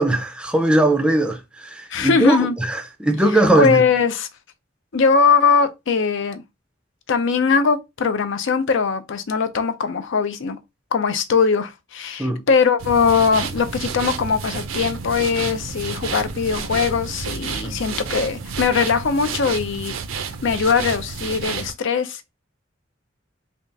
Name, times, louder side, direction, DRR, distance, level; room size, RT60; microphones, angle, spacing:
voice 1, 0.0-3.8 12.2-12.5 17.6-17.8, right 1 dB, 5° right, 0.4 m, -19 dB
voice 2, 1.9-2.5 3.6-4.3 4.9-6.4 7.1-10.6 10.9-20.0 20.4-22.2, left 5 dB, 65° left, 0.5 m, -20 dB
sound 1, 12.8-21.7, right 5 dB, 80° right, 0.5 m, -30 dB
3.4 x 2.4 x 3.9 m
head